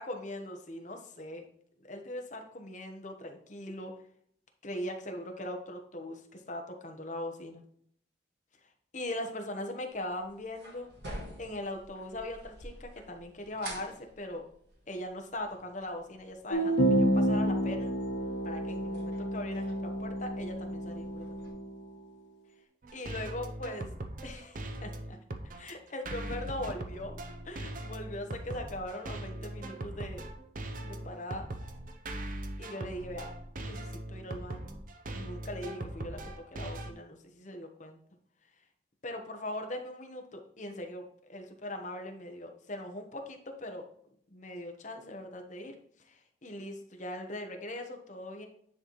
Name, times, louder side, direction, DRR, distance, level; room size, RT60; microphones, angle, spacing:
voice 1, 0.0-1.4 1.8-3.9 4.6-7.6 8.9-10.9 11.4-14.5 14.9-17.9 18.4-21.4 22.9-23.9 24.2-25.2 25.6-27.1 27.4-30.3 30.8-31.5 32.6-33.3 33.6-34.8 35.1-38.0 39.0-43.9 44.3-45.7 46.1-48.5, left 1 dB, 40° left, 4 dB, 1.0 m, -40 dB
sound 1, 9.9-21.5, right 1 dB, 65° right, 2.1 m, -50 dB
sound 2, 16.5-21.8, right 1 dB, 75° left, 1.1 m, -30 dB
sound 3, 22.8-36.9, right 1 dB, 45° right, 0.7 m, -40 dB
9.7 x 4.1 x 3.1 m, 0.67 s
head